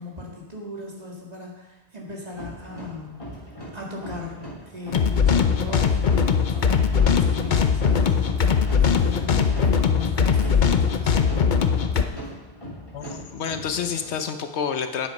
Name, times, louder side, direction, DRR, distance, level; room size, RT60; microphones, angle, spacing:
voice 1, 0.0-3.3 3.7-4.4 4.7-11.6, left 3 dB, 40° right, -2 dB, 2.2 m, -37 dB
sound 1, 2.3-14.2, equal, 30° left, 3.0 m, -39 dB
sound 2, 4.9-12.0, left 6 dB, 50° left, 0.8 m, -20 dB
voice 2, 12.9-15.1, left 7 dB, 85° left, 8 dB, 1.1 m, -28 dB
9.8 x 7.8 x 5.3 m, 1.1 s
omnidirectional pair, 1.1 m